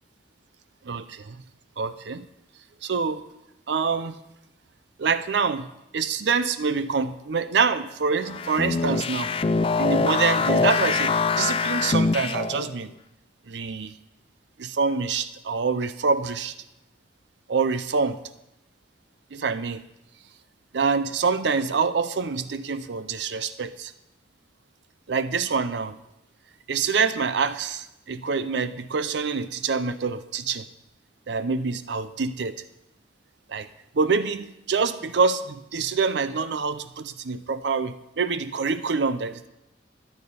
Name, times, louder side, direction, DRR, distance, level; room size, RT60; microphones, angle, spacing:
voice 1, 0.9-1.4 1.8-2.3 2.8-3.2 3.7-4.1 5.0-5.7 5.9-9.3 9.8-12.9 13.5-13.9 14.6-16.5 17.5-18.2 19.3-19.8 20.7-23.9 25.1-26.0 26.7-30.6 31.3-32.6 33.5-33.7 33.9-39.5, right 5 dB, 65° right, 13 dB, 0.5 m, -26 dB
sound 1, 8.2-12.7, left 4 dB, 30° left, 0.3 m, -24 dB
13.5 x 9.6 x 5.3 m, 0.90 s
head